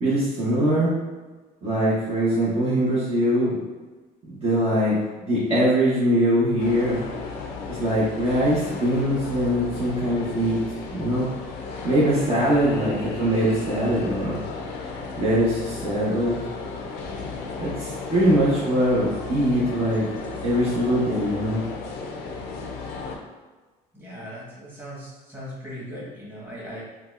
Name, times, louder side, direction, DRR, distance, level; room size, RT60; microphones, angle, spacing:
voice 1, 0.0-0.9 1.6-3.6 4.3-5.0 5.2-7.0 7.7-10.6 10.9-11.3 11.8-14.4 15.2-16.4 17.6-20.0 20.4-21.6, equal, 40° right, -9 dB, 0.9 m, -22 dB
sound 1, 6.6-23.2, left 4 dB, 90° left, 0.5 m, -34 dB
voice 2, 23.9-26.8, equal, 10° right, -7 dB, 1.4 m, -39 dB
4.0 x 2.3 x 2.5 m, 1.3 s
cardioid pair, 110°, 17 cm